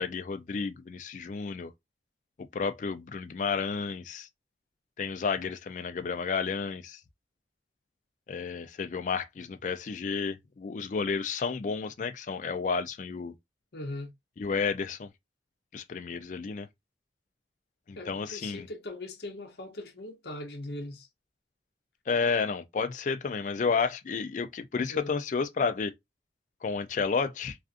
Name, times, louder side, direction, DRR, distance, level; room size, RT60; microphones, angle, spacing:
voice 1, 0.0-1.7 2.5-4.3 5.0-7.0 8.3-13.3 14.4-15.1 15.7-16.7 17.9-18.7 22.1-25.9 26.6-27.6, left 5 dB, 45° left, 0.3 m, -31 dB
voice 2, 13.7-14.1 18.0-21.1 24.9-25.1, left 1 dB, 60° left, 0.7 m, -40 dB
2.4 x 2.4 x 2.4 m
head